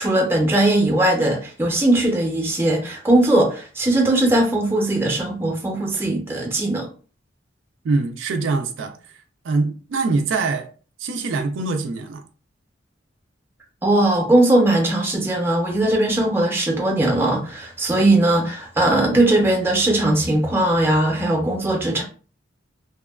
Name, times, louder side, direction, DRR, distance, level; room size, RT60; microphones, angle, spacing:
voice 1, 0.0-6.9 13.8-22.0, right 1 dB, 10° right, 0.5 m, -19 dB
voice 2, 7.8-9.0 9.4-10.7 11.0-12.2, right 3 dB, 70° right, 0.3 m, -23 dB
2.7 x 2.2 x 2.2 m
head